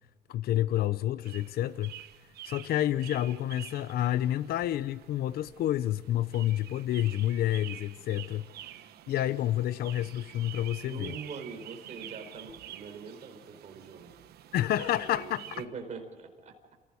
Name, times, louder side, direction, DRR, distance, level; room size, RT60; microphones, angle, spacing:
voice 1, 0.3-1.9 2.4-8.5 9.1-11.1 14.5-15.4, left 12 dB, 65° left, 0.7 m, -29 dB
sound 1, 1.2-15.6, right 12 dB, 70° right, 1.3 m, -48 dB
voice 2, 10.8-14.2 14.8-16.6, right 5 dB, 45° right, 4.7 m, -43 dB
29.0 x 16.5 x 6.3 m
cardioid pair, 110°, 17 cm